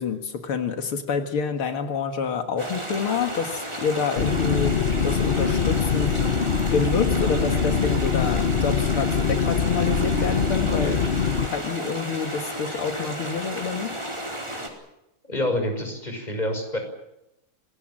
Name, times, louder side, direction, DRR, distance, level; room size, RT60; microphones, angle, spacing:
voice 1, 0.0-4.8 5.0-6.2 6.7-11.0 11.4-13.9, left 5 dB, 85° left, 6 dB, 2.7 m, -27 dB
sound 1, 2.6-14.7, right 1 dB, 15° right, 4.7 m, -33 dB
sound 2, 4.2-11.5, left 6 dB, 45° left, 0.8 m, -23 dB
voice 2, 15.2-16.8, left 1 dB, 20° left, 5 dB, 6.2 m, -27 dB
26.5 x 20.0 x 7.5 m, 0.86 s
omnidirectional pair, 2.3 m